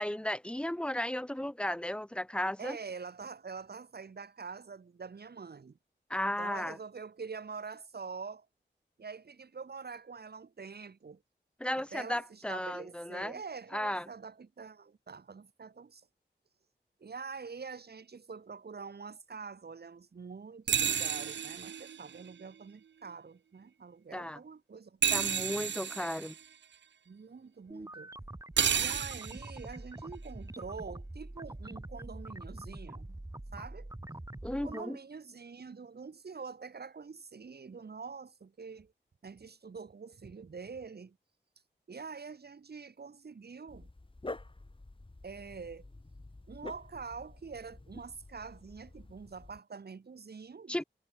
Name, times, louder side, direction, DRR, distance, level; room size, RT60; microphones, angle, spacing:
voice 1, 0.0-2.8 6.1-6.8 11.6-13.3 13.7-14.1 24.1-24.4 25.1-26.3 34.4-35.0 50.7-50.8, left 1 dB, 5° left, 0.7 m, -34 dB
voice 2, 2.6-5.8 6.4-8.5 9.0-11.2 11.8-16.1 17.0-25.7 27.1-28.1 28.7-33.2 33.5-33.9 34.5-38.9 39.2-41.2 41.9-43.9 45.2-45.9 46.5-50.8, right 5 dB, 60° right, 1.9 m, -45 dB
sound 1, 20.7-22.4 25.0-26.5 28.6-29.5, right 8 dB, 75° right, 0.6 m, -31 dB
sound 2, 27.7-34.8, right 1 dB, 15° right, 2.9 m, -45 dB
Dog, 43.7-49.6, left 2 dB, 25° left, 7.3 m, -48 dB
wide cardioid pair, 75°, 19 cm